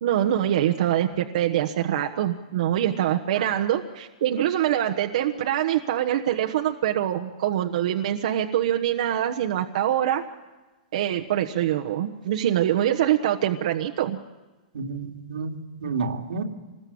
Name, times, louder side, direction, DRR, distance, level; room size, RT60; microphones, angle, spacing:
voice 1, 0.0-10.2 10.9-14.2, right 11 dB, 55° right, 1.2 m, -24 dB
voice 2, 14.7-16.4, right 4 dB, 90° right, 2.6 m, -31 dB
26.5 x 20.5 x 8.7 m
hypercardioid pair, 165°, 4 cm